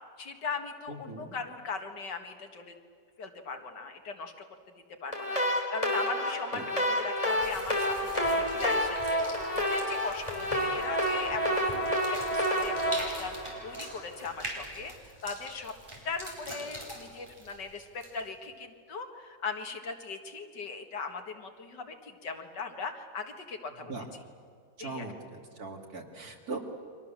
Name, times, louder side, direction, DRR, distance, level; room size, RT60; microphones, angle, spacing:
voice 1, 0.2-2.7 3.2-4.3 5.0-12.2 12.5-14.9 15.2-15.7 16.0-23.9 24.8-25.0, left 4 dB, 80° left, 5 dB, 2.5 m, -39 dB
voice 2, 0.9-1.4 6.5-6.6 23.8-24.0 24.8-26.6, right 3 dB, 60° right, 2 dB, 3.1 m, -40 dB
sound 1, 5.1-14.2, equal, 20° left, 3.8 m, -29 dB
sound 2, 7.2-18.4, right 1 dB, 15° right, 4.9 m, -44 dB
30.0 x 24.5 x 7.5 m, 2.1 s
omnidirectional pair, 1.9 m